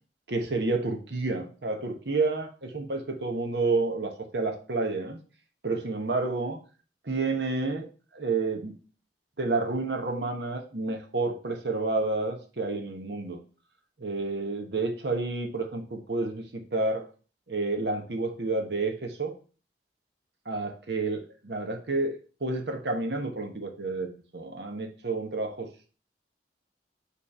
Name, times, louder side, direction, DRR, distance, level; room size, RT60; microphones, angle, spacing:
voice 1, 0.3-5.2 5.6-6.6 7.0-7.9 8.1-8.8 9.4-13.4 14.0-17.0 17.5-19.3 20.5-25.7, right 3 dB, 70° right, 3 dB, 1.1 m, -30 dB
5.5 x 3.3 x 5.4 m, 0.37 s
head